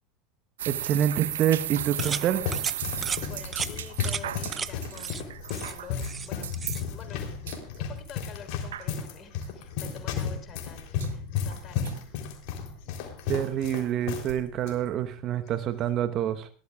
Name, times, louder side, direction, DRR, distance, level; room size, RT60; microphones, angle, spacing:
voice 1, 0.6-2.4 13.3-16.5, right 10 dB, 45° right, 11 dB, 1.2 m, -27 dB
sound 1, 0.6-15.0, right 11 dB, 70° right, 0.8 m, -37 dB
sound 2, 1.4-14.3 14.6-14.7 15.5-15.8, left 7 dB, 55° left, 3.7 m, -34 dB
sound 3, 2.0-2.2 2.5-2.7 3.0-3.2 3.5-3.7 4.0-4.2 4.5-4.7 5.0-5.2 5.5-6.3 6.5-6.8, right 6 dB, 25° right, 0.7 m, -33 dB
voice 2, 2.9-5.3 5.6-6.5 6.9-7.3 7.8-12.0, left 7 dB, 35° left, 6 dB, 4.2 m, -47 dB
21.5 x 17.0 x 2.5 m, 0.38 s
figure-of-eight pair, 80°, 0 cm